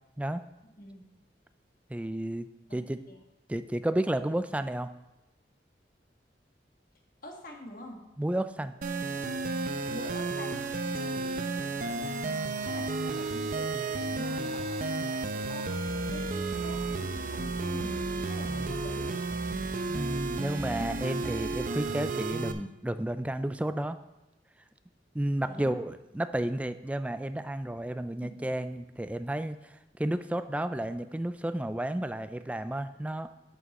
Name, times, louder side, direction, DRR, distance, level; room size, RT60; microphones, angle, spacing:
voice 1, 0.6-1.0 2.7-2.8 3.1-3.2 7.2-8.1 9.9-12.3 12.6-19.2 25.4-25.8 28.2-28.4, left 1 dB, 55° left, 1 dB, 1.6 m, -45 dB
voice 2, 1.9-3.0 3.5-4.9 8.2-8.7 18.5-18.8 19.9-24.0 25.1-33.3, right 1 dB, 10° right, 11 dB, 0.3 m, -32 dB
sound 1, 8.8-22.5, right 3 dB, 50° right, 0.6 m, -32 dB
11.0 x 6.0 x 4.2 m, 0.96 s
head